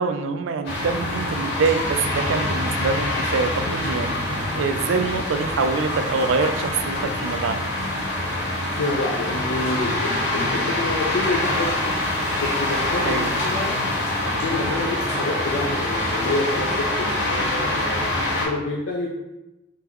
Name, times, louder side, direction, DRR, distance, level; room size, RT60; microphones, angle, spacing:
voice 1, 0.0-4.2 4.5-7.6 13.0-13.3, right 4 dB, 90° right, 8 dB, 0.4 m, -25 dB
sound 1, 0.6-18.4, left 1 dB, 65° left, 1.4 m, -25 dB
voice 2, 8.8-11.9 12.4-13.8 14.2-18.1 18.4-19.1, left 2 dB, 80° left, -2 dB, 0.5 m, -28 dB
3.8 x 3.4 x 3.0 m, 0.98 s
head